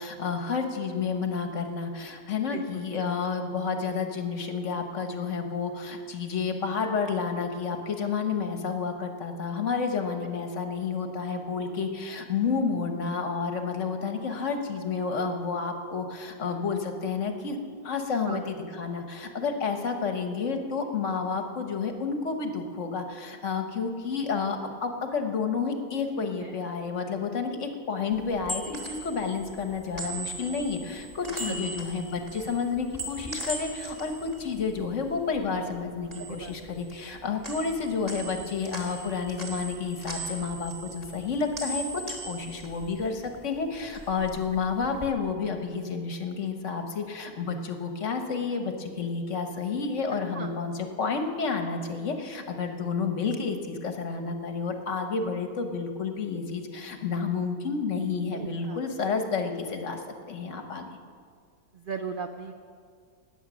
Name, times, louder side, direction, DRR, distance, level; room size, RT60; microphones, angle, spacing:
voice 1, 0.0-17.6 17.8-60.9, left 5 dB, 55° left, 5 dB, 1.3 m, -30 dB
voice 2, 2.5-2.8 18.3-18.4 26.2-26.6 31.5-31.7 36.2-36.5 50.3-50.5 58.3-58.8 61.7-62.5, right 5 dB, 60° right, 6 dB, 0.5 m, -37 dB
sound 1, 28.1-35.5 35.8-37.2 37.4-43.4 43.7-45.1, right 1 dB, 10° right, 2.2 m, -39 dB
19.5 x 8.0 x 6.2 m, 2.1 s
omnidirectional pair, 1.6 m